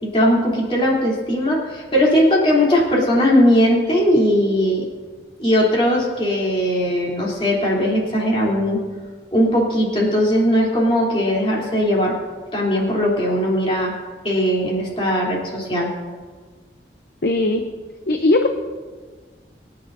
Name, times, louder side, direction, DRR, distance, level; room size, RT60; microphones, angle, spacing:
voice 1, 0.0-4.9 5.4-8.8 9.3-12.2 12.5-13.9 14.2-15.9, equal, 30° left, -4 dB, 3.4 m, -19 dB
voice 2, 17.2-17.6 18.1-18.5, left 2 dB, 60° left, 5 dB, 0.7 m, -18 dB
23.5 x 10.5 x 2.7 m, 1.5 s
head